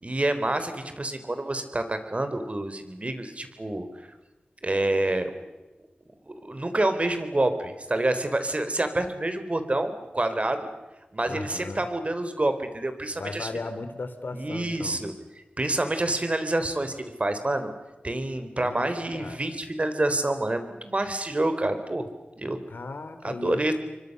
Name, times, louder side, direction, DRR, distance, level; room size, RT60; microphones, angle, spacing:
voice 1, 0.0-3.9 4.6-5.3 6.3-10.7 11.1-13.5 14.3-15.1 15.6-17.7 18.0-22.1 22.4-22.6 23.2-23.7, right 2 dB, 40° right, 9 dB, 3.9 m, -27 dB
voice 2, 11.2-11.8 13.2-15.0 18.6-18.9 19.1-19.4 22.7-23.7, left 3 dB, 75° left, 9 dB, 3.3 m, -36 dB
29.0 x 24.0 x 6.7 m, 1.1 s
cardioid pair, 50°, 3 cm